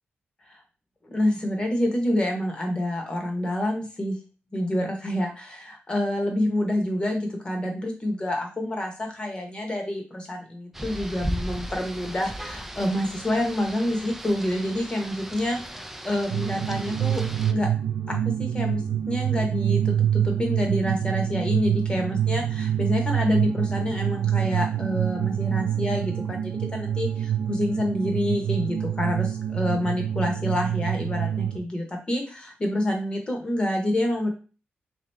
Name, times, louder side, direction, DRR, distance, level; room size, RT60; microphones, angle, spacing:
voice 1, 1.0-4.2 4.5-17.7 18.1-34.3, left 1 dB, 25° left, 2 dB, 1.0 m, -27 dB
Rain, 10.7-17.5, equal, 5° right, 0.3 m, -36 dB
sound 1, 16.3-31.6, right 10 dB, 85° right, 0.4 m, -26 dB
3.6 x 2.8 x 3.4 m, 0.36 s
wide cardioid pair, 155°, 4 cm